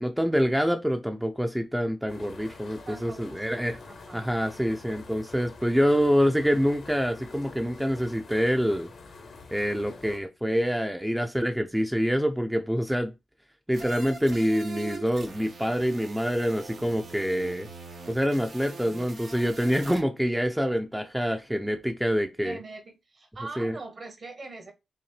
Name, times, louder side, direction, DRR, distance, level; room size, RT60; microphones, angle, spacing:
voice 1, 0.0-3.8 4.1-8.9 9.5-13.1 13.7-17.7 18.1-22.6 23.6-23.8, equal, 5° right, 0.5 m, -26 dB
sound 1, 2.1-10.2, left 4 dB, 70° left, 1.0 m, -46 dB
voice 2, 2.9-4.3 22.4-24.7, right 3 dB, 55° right, 1.4 m, -43 dB
sound 2, 13.7-20.0, right 3 dB, 75° right, 1.1 m, -43 dB
5.7 x 2.0 x 3.3 m
supercardioid pair, 50°, 0 cm